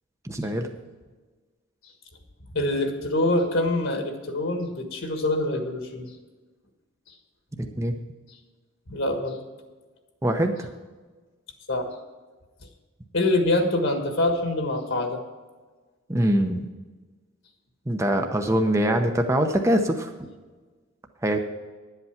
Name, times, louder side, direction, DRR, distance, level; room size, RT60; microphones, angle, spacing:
voice 1, 0.2-0.7 7.6-8.0 10.2-10.7 16.1-16.6 17.9-20.1 21.2-21.4, right 1 dB, 15° right, 4 dB, 0.7 m, -23 dB
voice 2, 2.5-6.1 8.9-9.4 11.7-11.9 13.1-15.2, left 2 dB, 65° left, 4 dB, 1.5 m, -25 dB
11.0 x 8.2 x 5.9 m, 1.3 s
head